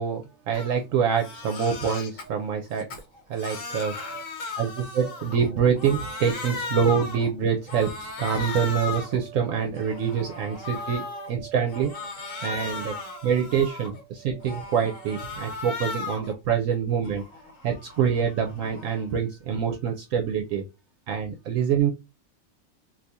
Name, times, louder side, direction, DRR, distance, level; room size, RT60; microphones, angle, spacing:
voice 1, 0.0-3.0 3.3-4.2 4.6-17.2 17.6-20.6 21.1-21.9, right 7 dB, 70° right, 3 dB, 0.9 m, -26 dB
Crying sobbing, 0.5-0.7 1.1-2.3 2.7-5.5 5.8-7.3 7.7-9.2 9.6-11.3 11.7-14.0 14.4-16.3 16.7-19.1, left 4 dB, 65° left, 1.3 m, -36 dB
2.7 x 2.6 x 3.4 m, 0.26 s
omnidirectional pair, 1.5 m